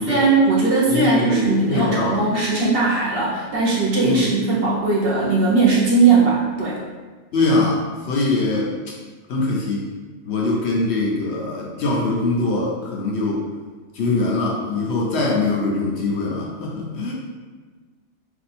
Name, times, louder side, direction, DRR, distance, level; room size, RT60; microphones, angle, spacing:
voice 1, 0.1-6.8, right 3 dB, 55° right, -5 dB, 0.8 m, -18 dB
voice 2, 0.9-2.3 4.0-4.3 7.3-8.7 9.3-9.9 10.3-13.4 14.0-17.1, left 2 dB, 65° left, -3 dB, 0.8 m, -22 dB
2.6 x 2.4 x 4.0 m, 1.4 s
omnidirectional pair, 1.4 m